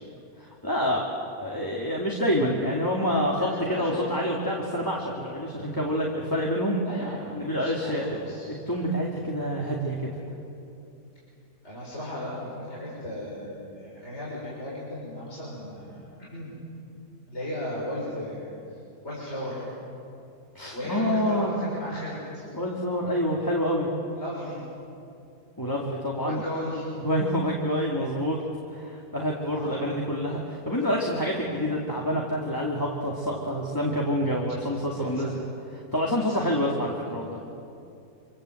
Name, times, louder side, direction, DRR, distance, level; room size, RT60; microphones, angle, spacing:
voice 1, 0.4-1.0 1.3-6.8 7.3-8.2 8.5-10.1 20.5-21.5 22.5-23.9 25.6-26.4 27.0-28.4 28.7-35.5 35.9-37.4, equal, 15° left, -3 dB, 2.4 m, -27 dB
voice 2, 3.4-4.2 6.8-8.5 11.6-16.5 17.3-18.5 19.0-19.7 20.7-22.5 24.1-24.6 26.2-26.9 29.5-29.9 35.0-35.3 36.1-36.5, left 1 dB, 40° left, -6 dB, 6.3 m, -36 dB
26.5 x 26.0 x 7.9 m, 2.7 s
omnidirectional pair, 1.7 m